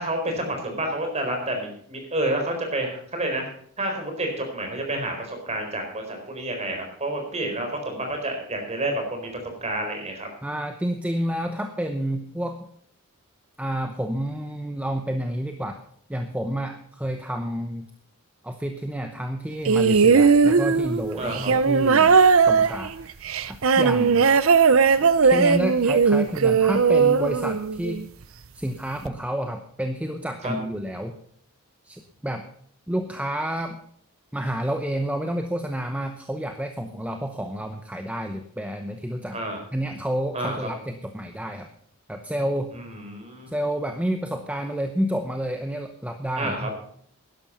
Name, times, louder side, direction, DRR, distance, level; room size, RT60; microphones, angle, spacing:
voice 1, 0.0-3.5 3.8-9.3 9.6-10.3 21.2-21.5 23.9-24.1 30.4-30.5 39.3-39.6 40.3-40.7 42.7-43.5 46.4-46.7, right 1 dB, 30° right, 3 dB, 4.2 m, -29 dB
voice 2, 10.4-12.6 13.6-15.8 16.1-17.9 18.4-22.1 22.5-24.3 25.0-28.0 28.5-31.2 31.8-32.4 32.9-33.8 34.3-39.4 39.7-41.7 42.1-42.7 43.5-46.7, equal, 5° right, 6 dB, 0.8 m, -29 dB
sound 1, 19.7-28.0 29.1-29.2, right 5 dB, 65° right, 0.6 m, -18 dB
12.0 x 11.5 x 5.6 m, 0.62 s
head